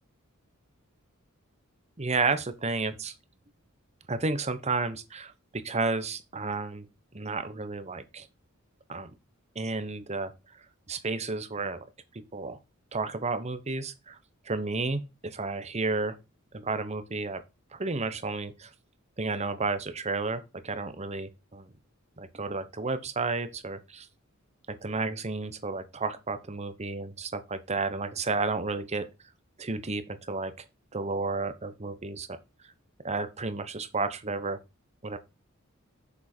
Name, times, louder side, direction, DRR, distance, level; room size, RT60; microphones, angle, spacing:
voice 1, 2.0-3.1 4.1-6.9 7.1-8.3 8.9-9.1 9.5-10.3 10.9-11.8 12.1-12.6 12.9-14.2 14.5-16.2 16.5-17.4 17.7-18.7 19.2-21.7 22.2-24.1 24.7-29.1 29.6-30.5 30.9-32.4 33.0-34.6 35.0-35.2, right 3 dB, 30° right, 1.0 m, -32 dB
7.2 x 7.0 x 4.4 m
head